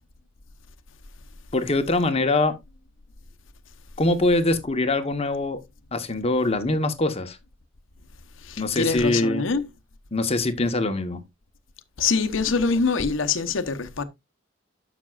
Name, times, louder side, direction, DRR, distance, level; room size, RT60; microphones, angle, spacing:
voice 1, 1.5-2.5 4.0-5.6 5.9-7.4 8.6-9.5 10.1-11.2, left 2 dB, 30° left, 1.0 m, -23 dB
voice 2, 8.5-9.6 12.0-14.0, left 4 dB, 80° left, 0.9 m, -24 dB
12.5 x 6.0 x 2.4 m
head